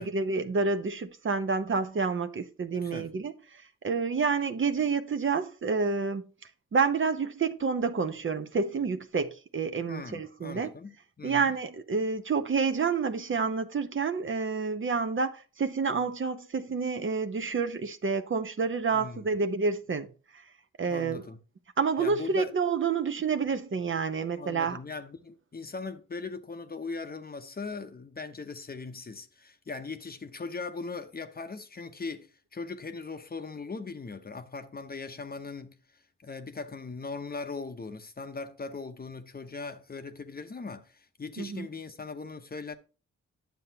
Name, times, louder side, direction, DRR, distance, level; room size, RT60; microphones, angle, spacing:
voice 1, 0.0-6.3 6.7-10.7 11.2-20.1 20.8-21.2 21.8-24.8 41.4-41.7, right 5 dB, 40° right, 0.8 m, -29 dB
voice 2, 2.7-3.1 9.9-11.5 18.9-19.3 20.9-21.4 22.0-22.5 24.4-35.8 36.2-42.8, left 4 dB, 30° left, 0.8 m, -39 dB
9.3 x 6.8 x 2.8 m
cardioid pair, 60°, 29 cm